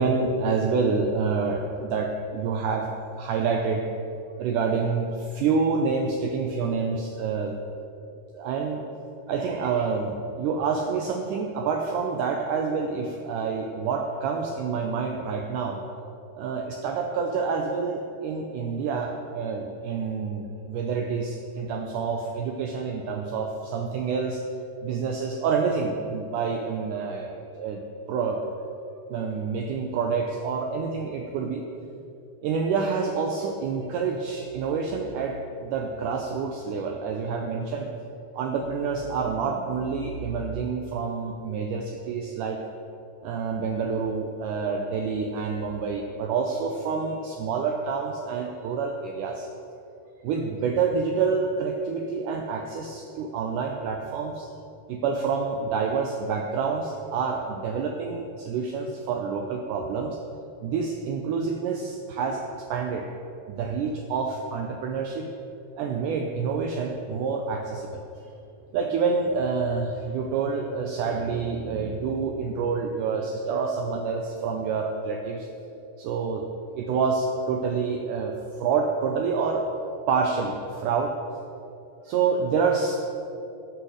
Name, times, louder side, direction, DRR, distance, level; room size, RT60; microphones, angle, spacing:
voice 1, 0.0-2.9 3.2-3.8 4.4-7.6 8.3-8.8 9.3-15.8 16.4-24.4 24.8-27.3 27.6-27.8 28.1-28.4 29.1-31.6 32.4-37.9 38.3-42.6 43.2-49.5 50.2-54.5 54.9-60.2 60.6-63.1 63.5-65.3 65.8-68.0 68.7-75.5 76.0-76.4 76.8-79.7 80.1-81.1 82.0-83.0, right 5 dB, 80° right, 2 dB, 1.8 m, -27 dB
13.5 x 5.9 x 6.4 m, 2.8 s
omnidirectional pair, 4.5 m